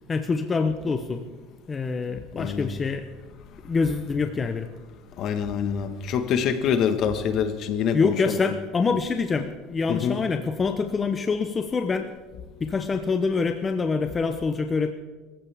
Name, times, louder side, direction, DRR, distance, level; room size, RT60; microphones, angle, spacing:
voice 1, 0.1-1.3 1.7-3.1 3.6-4.7 7.9-12.1 12.6-14.9, left 4 dB, 20° left, 0.7 m, -25 dB
voice 2, 2.1-2.7 5.2-8.4 9.9-10.2, left 7 dB, 50° left, 1.4 m, -26 dB
25.0 x 15.0 x 3.5 m
cardioid pair, 135°, 0 cm